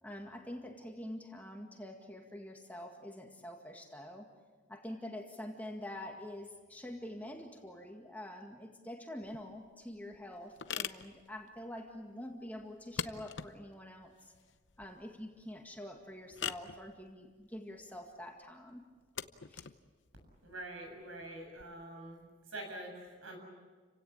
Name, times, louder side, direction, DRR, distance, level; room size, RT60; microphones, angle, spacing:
voice 1, 0.0-4.3 4.7-14.3 14.8-18.8 19.5-19.7, left 1 dB, 10° left, 2 dB, 2.0 m, -46 dB
sound 1, 9.2-21.6, left 8 dB, 60° left, 0.8 m, -46 dB
voice 2, 20.4-22.2 22.5-23.4, right 1 dB, 80° right, 3 dB, 7.7 m, -45 dB
30.0 x 17.0 x 8.7 m, 1.4 s
head